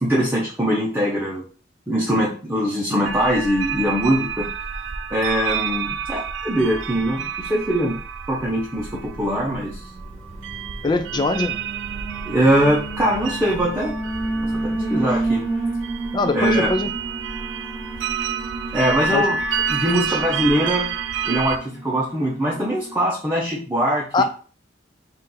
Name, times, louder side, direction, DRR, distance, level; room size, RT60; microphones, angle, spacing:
voice 1, 0.0-1.4 1.9-4.5 5.1-8.0 8.3-9.9 12.3-13.9 14.4-15.5 16.3-16.7 18.7-19.4 19.7-20.9 21.2-24.2, equal, 10° right, -5 dB, 0.7 m, -22 dB
sound 1, 3.1-21.6, right 6 dB, 80° right, 0.4 m, -29 dB
Alarm, 9.6-23.0, right 2 dB, 5° left, 1.5 m, -31 dB
voice 2, 10.8-11.6 16.1-16.9 19.1-19.3 20.0-20.2 24.1-24.2, left 3 dB, 25° left, 7 dB, 0.3 m, -22 dB
4.1 x 2.5 x 3.9 m, 0.40 s
head